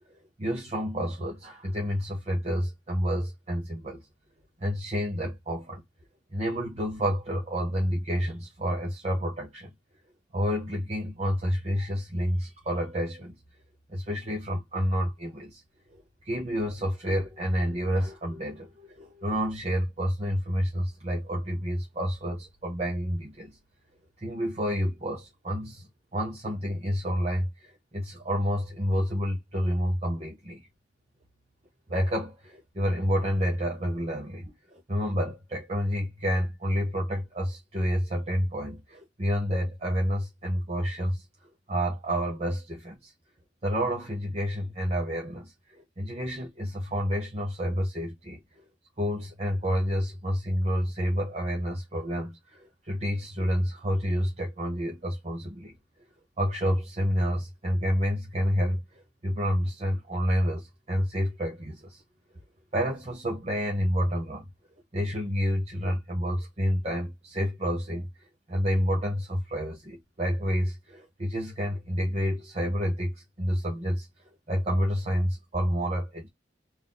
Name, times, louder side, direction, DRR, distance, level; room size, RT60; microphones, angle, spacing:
voice 1, 0.4-4.0 4.6-5.8 6.3-9.7 10.3-13.3 13.9-15.6 15.9-23.6 24.2-30.7 31.9-41.2 41.7-43.1 43.6-48.6 49.0-55.7 56.4-62.0 62.7-64.4 64.9-74.1 74.5-76.3, equal, 35° right, 1.0 m, -29 dB
4.0 x 2.6 x 3.8 m
head